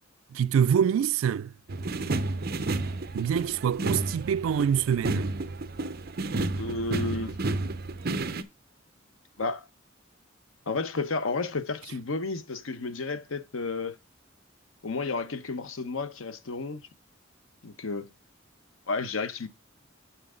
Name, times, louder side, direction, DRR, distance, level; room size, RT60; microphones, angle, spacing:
voice 1, 0.3-1.5 3.1-5.3, right 8 dB, 80° right, 0.3 m, -25 dB
sound 1, 1.7-8.4, right 2 dB, 50° right, 0.7 m, -31 dB
voice 2, 6.6-7.3 9.4-9.6 10.7-14.0 14.8-16.9 17.6-18.1 18.9-19.5, left 3 dB, 85° left, 0.9 m, -32 dB
8.0 x 5.8 x 3.7 m
head